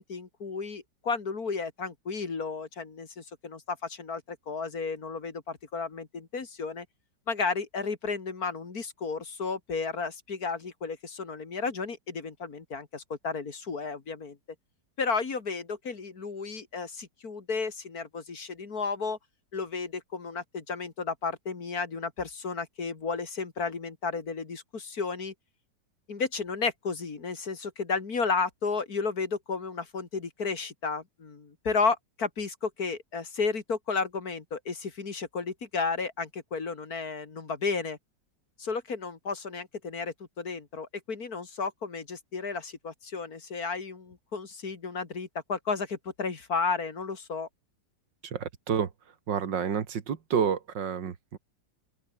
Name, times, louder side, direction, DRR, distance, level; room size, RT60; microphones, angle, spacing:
voice 1, 0.0-6.9 7.3-14.4 15.0-19.2 19.5-25.3 26.1-38.0 38.6-47.5, left 4 dB, 55° left, 2.8 m, -33 dB
voice 2, 48.2-48.9 49.3-51.4, right 7 dB, 75° right, 2.3 m, -29 dB
open air
omnidirectional pair, 2.0 m